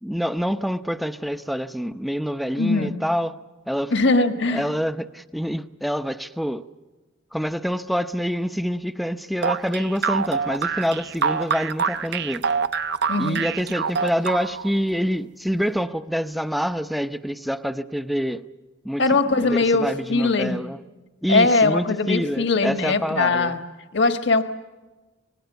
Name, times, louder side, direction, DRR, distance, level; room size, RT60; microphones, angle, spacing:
voice 1, 0.0-3.4 3.7-3.9 4.5-6.6 7.3-12.4 13.2-18.4 18.8-20.8 21.2-23.5, equal, ahead, 0.7 m, -26 dB
voice 2, 2.6-3.0 3.9-4.7 13.1-13.4 19.0-20.6 21.3-23.6 23.9-24.4, left 3 dB, 65° left, 1.5 m, -20 dB
sound 1, 9.4-14.7, right 6 dB, 60° right, 0.8 m, -25 dB
25.5 x 20.0 x 8.0 m
head